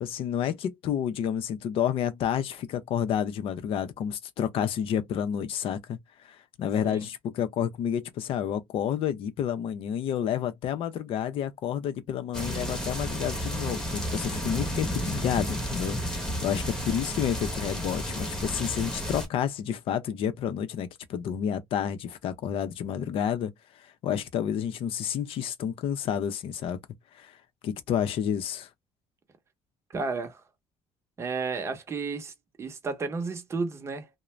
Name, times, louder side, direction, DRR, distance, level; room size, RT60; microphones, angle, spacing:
voice 1, 0.0-6.0 6.2-23.5 24.0-26.8 27.2-27.3 27.6-28.7, left 9 dB, 55° left, 0.6 m, -30 dB
sound 1, 12.3-19.3, equal, 5° left, 0.9 m, -32 dB
voice 2, 29.9-30.4 31.2-32.3 32.6-34.1, right 4 dB, 25° right, 0.7 m, -32 dB
2.5 x 2.1 x 3.1 m
cardioid pair, 145°, 11 cm